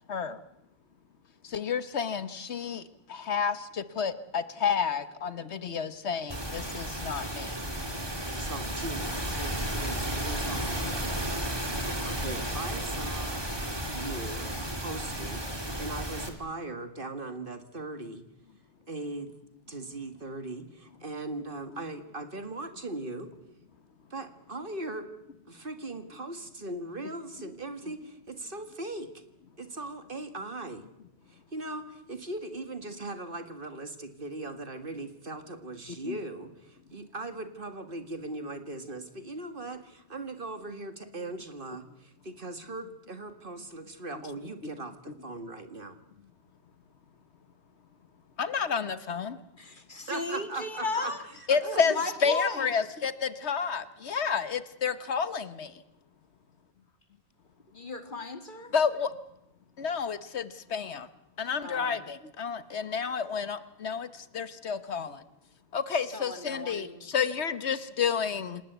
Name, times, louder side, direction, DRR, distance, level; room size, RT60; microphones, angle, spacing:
voice 1, 0.1-0.4 1.4-2.8 3.1-7.6 36.0-36.2 48.4-49.4 51.5-51.9 52.2-55.8 58.7-59.1 59.8-61.1 61.4-65.2 65.7-68.6, left 6 dB, 85° left, 13 dB, 1.5 m, -30 dB
sound 1, 6.3-16.3, right 1 dB, 20° right, 3.1 m, -33 dB
voice 2, 8.4-11.3 11.7-13.4 13.9-14.5 14.8-15.4 15.8-18.2 18.9-19.3 19.7-23.3 24.1-25.1 25.5-29.1 29.6-30.8 31.3-46.0 50.1-51.1 51.6-52.0, right 2 dB, 55° right, 8 dB, 2.2 m, -39 dB
voice 3, 49.6-51.3 51.8-52.7 57.7-58.7 61.6-62.0 65.9-67.0, left 3 dB, 50° left, 8 dB, 2.4 m, -35 dB
27.5 x 19.0 x 8.2 m, 0.86 s
omnidirectional pair, 1.1 m